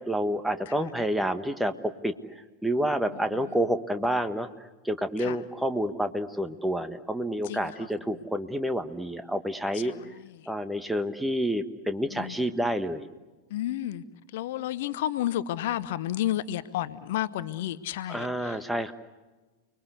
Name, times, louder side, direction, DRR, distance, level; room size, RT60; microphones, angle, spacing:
voice 1, 0.0-1.7 2.0-2.1 2.6-4.5 4.8-9.9 10.5-13.1 18.1-18.9, equal, 5° right, 1.3 m, -28 dB
voice 2, 13.5-14.0 14.3-18.6, left 13 dB, 55° left, 0.8 m, -31 dB
30.0 x 21.5 x 8.2 m
figure-of-eight pair, 90°, 0 cm